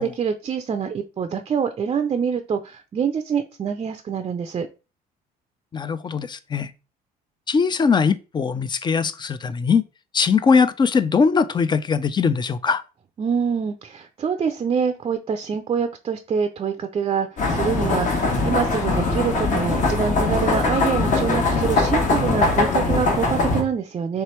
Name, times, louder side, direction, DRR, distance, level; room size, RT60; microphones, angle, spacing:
voice 1, 0.0-4.7 13.2-24.2, right 6 dB, 35° right, 0.5 m, -25 dB
voice 2, 5.7-6.7 7.5-9.8 10.1-12.8, left 5 dB, 25° left, 0.4 m, -20 dB
sound 1, 17.4-23.6, left 3 dB, 50° left, 1.2 m, -21 dB
3.3 x 3.1 x 4.3 m
cardioid pair, 110°, 17 cm